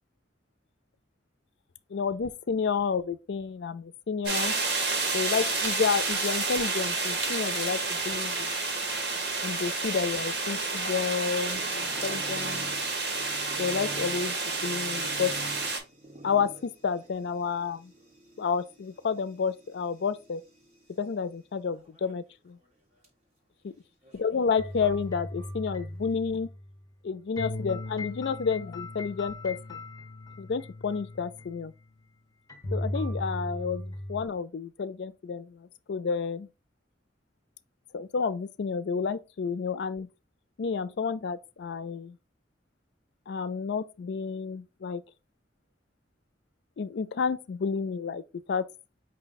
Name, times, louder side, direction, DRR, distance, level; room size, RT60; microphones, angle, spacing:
voice 1, 1.9-4.5 5.1-8.5 9.4-12.7 13.6-14.4 14.6-15.3 16.2-17.9 18.4-20.4 21.0-22.6 24.1-26.5 27.0-29.8 30.4-31.7 32.7-36.5 37.9-40.1 40.6-42.2 43.3-45.0 46.8-48.2 48.5-48.6, left 5 dB, 75° left, 0.4 m, -30 dB
sound 1, 4.2-15.8, right 3 dB, 75° right, 1.3 m, -30 dB
sound 2, 11.5-21.0 21.7-22.3 22.6-22.7 23.0-23.1 24.0-25.2, equal, 40° right, 1.6 m, -47 dB
sound 3, 24.6-26.8 27.4-31.7 32.5-34.2, left 1 dB, 20° left, 1.0 m, -37 dB
5.3 x 2.2 x 3.9 m
head